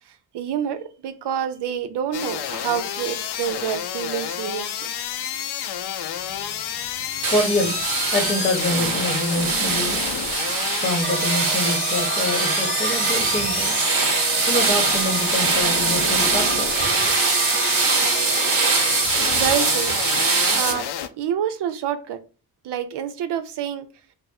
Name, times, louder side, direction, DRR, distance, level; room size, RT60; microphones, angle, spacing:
voice 1, 0.3-4.9 19.3-20.1 20.5-22.2 22.6-23.9, right 9 dB, 85° right, 0.6 m, -27 dB
sound 1, 2.1-21.1, left 9 dB, 80° left, 0.5 m, -30 dB
voice 2, 6.3-10.0 10.7-13.7 14.5-17.1, left 1 dB, 20° left, 0.9 m, -26 dB
sound 2, 7.2-20.7, right 4 dB, 55° right, 0.9 m, -22 dB
sound 3, 11.0-19.1, right 6 dB, 30° right, 0.4 m, -31 dB
3.5 x 2.0 x 4.1 m
cardioid pair, 95°, 40 cm